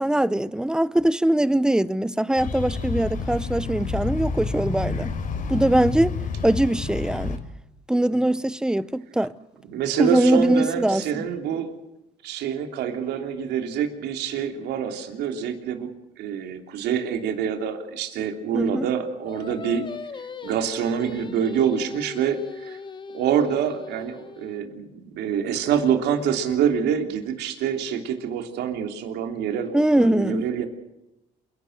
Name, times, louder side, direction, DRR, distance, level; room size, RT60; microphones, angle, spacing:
voice 1, 0.0-5.1 5.5-6.2 6.4-7.4 7.9-9.3 10.0-11.2 18.5-18.9 29.7-30.4, right 1 dB, 5° right, 0.7 m, -22 dB
sound 1, 2.4-7.4, left 4 dB, 55° left, 4.1 m, -29 dB
voice 2, 9.7-11.7 12.2-15.9 16.2-19.8 20.4-22.8 23.1-30.7, right 8 dB, 80° right, 3.1 m, -26 dB
Singing, 19.3-24.6, left 4 dB, 30° left, 1.6 m, -39 dB
28.0 x 12.0 x 7.8 m
cardioid pair, 110°, 17 cm